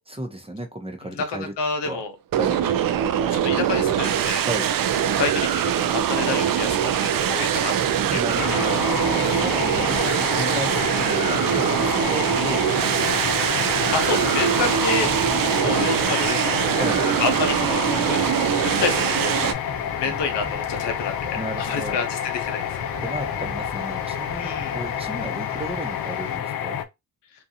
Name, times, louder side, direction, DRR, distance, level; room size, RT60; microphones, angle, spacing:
voice 1, 0.1-1.5 1.8-2.0 2.4-2.6 4.5-4.7 8.1-13.6 16.8-17.0 21.3-22.0 23.0-26.8, right 1 dB, 15° right, 0.7 m, -34 dB
voice 2, 1.1-2.1 2.6-2.8 3.3-4.5 5.1-7.7 8.1-8.2 8.5-8.7 9.2-9.4 13.9-15.1 15.5-18.2 18.8-19.3 20.0-22.7 24.4-24.8, left 4 dB, 85° left, 0.8 m, -28 dB
sound 1, 2.3-19.5, right 9 dB, 55° right, 0.5 m, -22 dB
sound 2, 6.6-26.4, right 2 dB, 35° right, 1.1 m, -41 dB
sound 3, 8.3-26.8, left 10 dB, 60° left, 0.5 m, -29 dB
2.7 x 2.3 x 2.7 m
cardioid pair, 55°, 41 cm